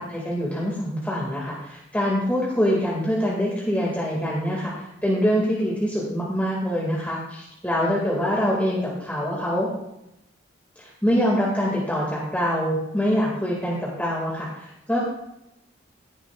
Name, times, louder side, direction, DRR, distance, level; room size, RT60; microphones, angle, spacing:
voice 1, 0.0-9.7 10.8-15.0, equal, 10° left, -5 dB, 2.1 m, -24 dB
16.5 x 10.5 x 2.4 m, 0.87 s
head